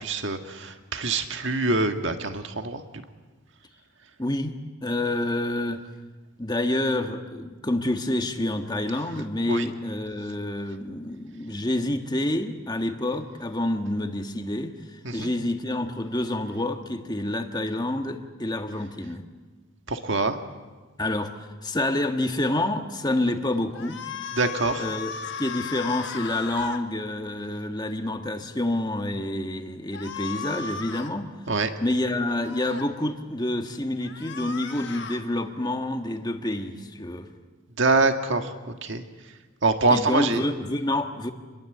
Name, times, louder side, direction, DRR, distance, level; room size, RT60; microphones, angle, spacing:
voice 1, 0.0-2.8 9.5-9.7 15.0-15.3 19.9-20.4 24.3-24.8 31.5-31.7 37.8-38.5 38.8-39.0 39.6-40.4, right 3 dB, 55° right, 6 dB, 1.8 m, -24 dB
voice 2, 4.2-4.5 4.8-5.8 6.4-19.2 21.0-21.3 21.6-24.0 24.8-31.3 31.8-37.3 39.9-41.3, left 1 dB, 20° left, 5 dB, 1.5 m, -28 dB
sound 1, 23.7-26.8 29.9-31.1 32.3-32.9 34.0-35.2, left 6 dB, 55° left, 1.6 m, -36 dB
27.0 x 21.5 x 8.0 m, 1.3 s
head